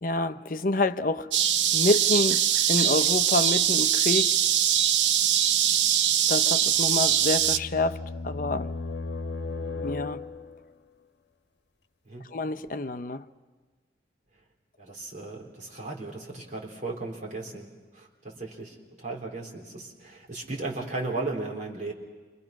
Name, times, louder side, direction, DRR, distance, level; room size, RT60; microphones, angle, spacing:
voice 1, 0.0-1.3 1.7-2.4 2.7-4.3 6.3-8.7 9.8-10.2 12.3-13.2, left 2 dB, 50° left, 0.7 m, -27 dB
sound 1, 1.3-7.6, right 10 dB, 85° right, 0.7 m, -22 dB
sound 2, 6.8-10.7, left 3 dB, 75° left, 1.1 m, -36 dB
voice 2, 14.8-21.9, right 3 dB, 45° right, 3.7 m, -36 dB
28.5 x 25.0 x 6.0 m
head